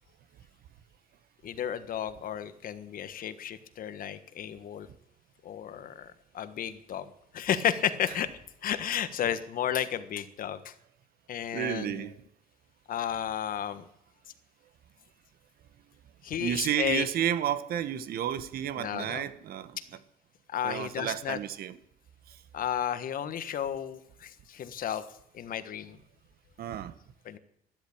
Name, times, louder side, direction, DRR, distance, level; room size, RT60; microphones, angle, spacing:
voice 1, 1.4-4.9 5.4-8.3 8.6-10.7 11.3-12.0 12.9-13.8 16.2-17.0 18.8-19.2 20.5-21.4 22.5-25.0 25.3-26.0 27.2-27.4, left 9 dB, 55° left, 12 dB, 1.4 m, -33 dB
voice 2, 11.5-12.1 16.4-19.8 20.6-21.8 26.6-26.9, right 10 dB, 65° right, 14 dB, 1.2 m, -31 dB
13.0 x 12.5 x 8.6 m, 0.74 s
cardioid pair, 110°, 17 cm